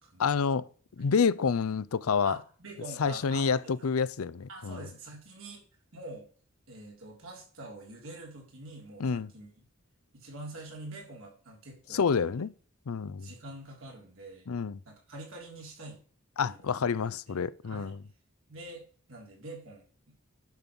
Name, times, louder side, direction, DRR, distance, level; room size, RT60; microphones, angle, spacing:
voice 1, 0.2-0.7 1.0-2.4 3.0-4.8 9.0-9.3 11.9-12.5 12.9-13.3 14.5-14.8 16.4-18.0, left 5 dB, 85° left, 0.5 m, -28 dB
voice 2, 2.2-3.9 4.5-5.6 5.9-6.3 6.7-9.5 10.1-12.4 13.2-14.5 14.8-16.0 16.4-16.9 17.3-17.4 17.6-17.9 18.5-20.1, right 2 dB, 75° right, 3.5 m, -46 dB
10.5 x 5.3 x 6.0 m
head